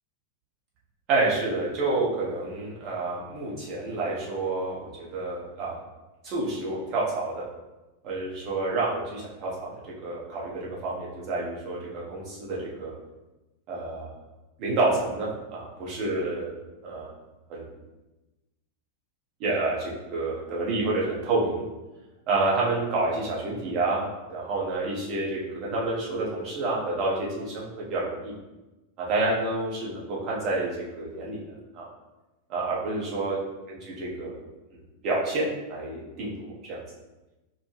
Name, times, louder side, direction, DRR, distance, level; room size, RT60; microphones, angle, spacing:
voice 1, 1.1-5.8 6.2-7.4 8.0-12.9 13.7-14.1 14.6-16.5 16.8-17.1 17.5-17.7 19.4-21.6 22.3-28.3 29.0-31.4 31.7-31.9 32.5-33.4 33.7-34.4 35.0-36.8, right 2 dB, 40° right, -5 dB, 1.2 m, -29 dB
4.9 x 2.3 x 3.3 m, 1.1 s
figure-of-eight pair, 90°, 0 cm